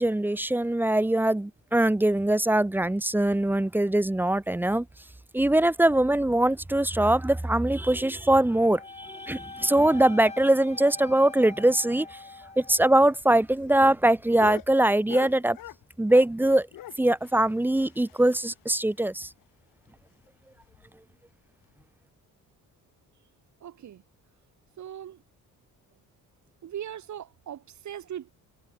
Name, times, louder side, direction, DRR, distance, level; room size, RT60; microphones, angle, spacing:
voice 1, 0.0-4.9 5.3-12.2 12.6-15.6 16.0-16.7 17.0-19.3, right 1 dB, 5° right, 0.9 m, -22 dB
Wind instrument woodwind instrument, 8.5-12.8, left 3 dB, 20° left, 3.4 m, -43 dB
sound 1, 13.0-16.4 16.7-18.7 19.0-19.1 19.4-19.5 19.9-20.0 20.6-20.9 21.7-21.8, left 13 dB, 75° left, 4.3 m, -43 dB
voice 2, 23.6-24.0 24.8-25.2 26.6-28.3, right 10 dB, 55° right, 3.7 m, -39 dB
cardioid pair, 135°, 33 cm